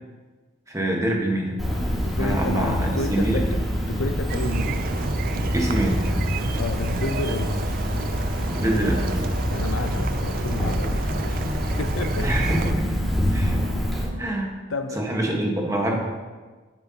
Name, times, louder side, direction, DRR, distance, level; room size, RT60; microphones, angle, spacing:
voice 1, 0.7-1.6 2.0-3.5 5.5-6.1 8.6-9.2 12.2-13.6 14.2-14.5 15.0-16.0, right 1 dB, 15° right, 1.4 m, -25 dB
Cricket, 1.6-14.0, equal, ahead, 2.2 m, -26 dB
voice 2, 2.0-3.6 3.9-4.8 6.6-7.7 9.5-12.5 13.7-14.0 14.7-15.0, left 3 dB, 90° left, 0.6 m, -31 dB
sound 1, 4.3-12.7, right 5 dB, 45° right, 0.4 m, -32 dB
10.0 x 9.3 x 2.9 m
head